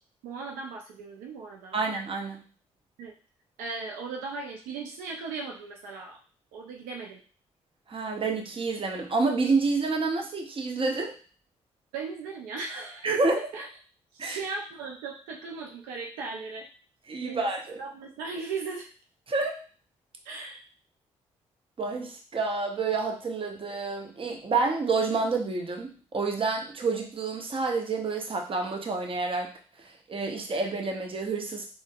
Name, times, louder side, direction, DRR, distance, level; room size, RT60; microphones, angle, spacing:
voice 1, 0.2-1.8 3.0-3.1 3.6-6.2 6.5-7.2 11.9-13.1 13.5-13.7 14.1-16.7 17.2-17.5 17.8-18.9 20.2-20.6, right 4 dB, 80° right, 0 dB, 0.4 m, -37 dB
voice 2, 1.7-2.4 7.9-11.1 13.0-13.4 14.2-14.4 17.1-17.8 19.3-19.6 21.8-29.5 29.8-31.7, right 3 dB, 40° right, 2 dB, 0.7 m, -28 dB
3.8 x 2.1 x 2.3 m, 0.39 s
hypercardioid pair, 45°, 14 cm